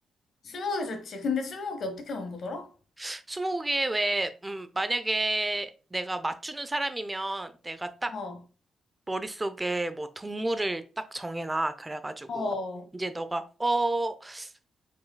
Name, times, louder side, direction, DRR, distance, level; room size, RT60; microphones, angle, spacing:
voice 1, 0.4-2.7 8.1-8.4 12.3-12.9, left 3 dB, 65° left, 1.2 m, -32 dB
voice 2, 3.0-8.1 9.1-10.8 11.1-12.5 12.9-14.5, right 2 dB, 20° right, 0.6 m, -30 dB
5.4 x 4.3 x 2.3 m
supercardioid pair, 60°, 0 cm